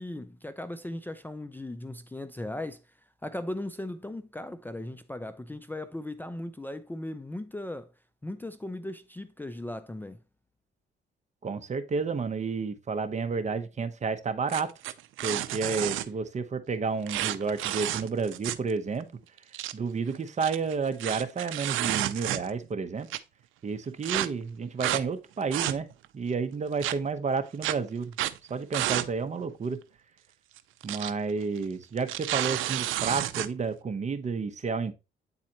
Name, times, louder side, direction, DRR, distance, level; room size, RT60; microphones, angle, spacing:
voice 1, 0.0-2.8 3.2-7.9 8.2-10.2, left 1 dB, 10° left, 0.4 m, -37 dB
voice 2, 11.4-14.7 15.2-19.1 19.7-23.1 23.6-25.9 26.1-28.2 28.5-29.8 30.8-34.9, right 5 dB, 35° right, 0.8 m, -31 dB
sound 1, 14.5-16.1 17.1-18.7 19.0-19.1 19.4-19.7 20.3-22.7 23.1-23.2 24.0-24.3 24.8-25.0 25.4-26.1 26.8-26.9 27.6-27.7 28.1-28.4 28.7-29.1 29.4-29.5 30.6-31.1 31.4-31.6 32.0-33.5, right 14 dB, 85° right, 0.5 m, -30 dB
8.7 x 4.1 x 2.8 m
cardioid pair, 90°, 20 cm